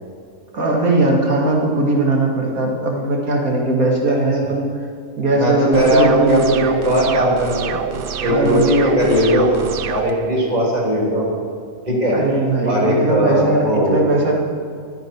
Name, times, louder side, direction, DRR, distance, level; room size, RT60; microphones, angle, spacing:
voice 1, 0.5-4.7 5.2-6.5 8.3-8.7 12.1-14.3, right 2 dB, 85° right, -1 dB, 2.6 m, -19 dB
voice 2, 5.4-7.7 8.2-11.3 11.9-12.2 12.7-14.1, equal, 30° right, -5 dB, 3.6 m, -18 dB
sound 1, 5.7-10.1, right 7 dB, 55° right, 0.6 m, -26 dB
22.0 x 9.0 x 4.6 m, 2.3 s
omnidirectional pair, 1.5 m